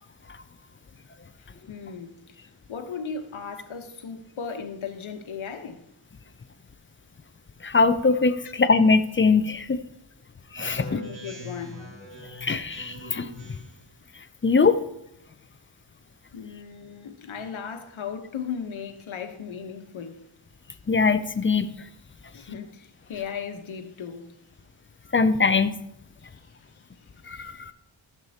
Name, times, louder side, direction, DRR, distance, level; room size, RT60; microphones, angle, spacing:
voice 1, 1.4-2.4 2.7-5.8 10.7-11.9 16.3-20.2 22.3-24.3 26.2-26.3 27.3-27.5, left 6 dB, 70° left, 1.1 m, -37 dB
voice 2, 7.6-9.8 10.5-11.0 12.4-13.6 14.4-14.8 20.9-21.7 25.1-25.8 27.3-27.7, left 4 dB, 25° left, 0.4 m, -22 dB
Speech synthesizer, 10.5-13.9, left 1 dB, 65° right, 2.5 m, -42 dB
12.5 x 7.4 x 2.8 m
wide cardioid pair, 95°, 49 cm